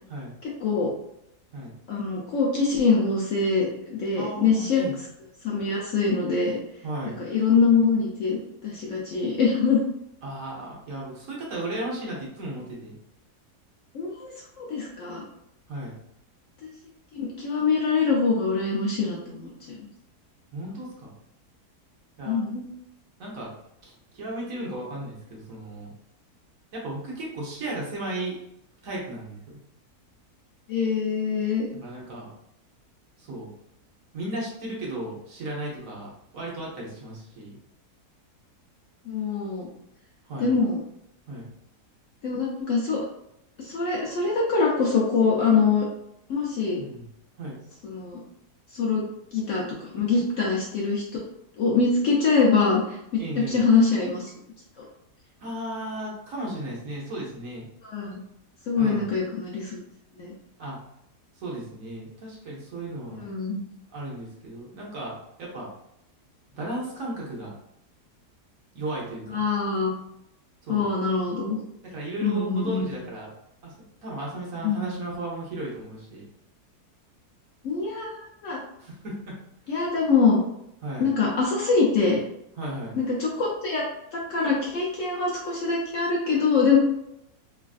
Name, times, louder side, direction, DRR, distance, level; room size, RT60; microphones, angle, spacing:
voice 1, 0.4-0.9 1.9-4.8 5.4-6.6 7.2-9.8 13.9-15.2 16.6-16.7 17.1-19.9 22.2-22.7 30.7-31.7 39.1-39.7 40.4-40.8 42.2-43.0 43.6-45.9 46.3-46.8 47.8-48.2 48.7-49.0 49.3-51.2 51.6-53.2 53.5-54.3 57.8-58.2 58.7-59.8 60.2-60.3 63.1-63.6 69.3-69.9 70.7-71.6 72.2-72.9 74.6-74.9 77.6-78.6 79.7-80.4 81.0-82.2 83.0-83.9 84.1-86.8, left 4 dB, 70° left, -3 dB, 0.8 m, -24 dB
voice 2, 4.1-5.0 6.8-7.2 10.2-13.0 15.7-16.0 20.5-21.1 22.2-22.4 23.2-23.5 23.8-25.9 26.7-28.4 28.8-29.6 31.8-32.3 33.2-33.5 34.1-37.6 40.3-40.6 41.3-41.5 46.8-47.1 47.4-47.6 53.2-53.6 55.4-57.7 58.8-59.1 60.6-60.8 61.4-63.3 63.9-65.7 66.5-67.5 68.7-69.4 70.6-70.8 71.8-73.3 73.6-73.7 74.0-76.3 78.8-79.4 80.8-81.1 82.6-83.0, right 1 dB, 60° right, -3 dB, 1.1 m, -35 dB
3.2 x 2.4 x 2.3 m, 0.79 s
omnidirectional pair, 1.7 m